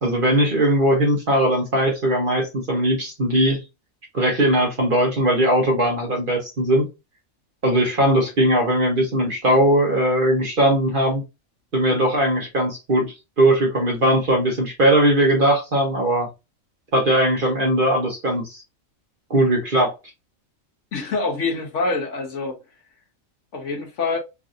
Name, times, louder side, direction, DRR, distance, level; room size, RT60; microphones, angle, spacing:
voice 1, 0.0-3.6 4.1-6.9 7.6-11.2 11.7-16.3 16.9-18.6 19.3-19.9, right 1 dB, 45° right, 1.1 m, -19 dB
voice 2, 20.9-22.6 23.5-24.2, left 3 dB, 60° left, 1.1 m, -25 dB
3.2 x 2.6 x 2.5 m
omnidirectional pair, 1.4 m